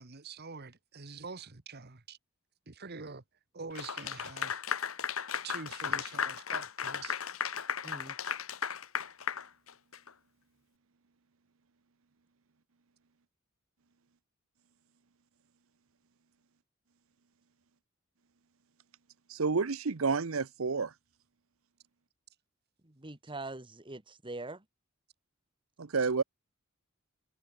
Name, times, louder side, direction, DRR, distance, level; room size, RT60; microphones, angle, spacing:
voice 1, 0.0-2.2 2.7-3.2 3.5-4.6 5.0-5.1 5.4-7.2, right 4 dB, 50° right, 1.5 m, -45 dB
Clapping / Applause, 3.8-10.1, left 7 dB, 85° left, 1.7 m, -35 dB
voice 2, 7.8-8.2 22.8-24.6, right 2 dB, 25° right, 1.9 m, -43 dB
voice 3, 19.3-20.9 25.8-26.2, right 4 dB, 80° right, 0.8 m, -30 dB
head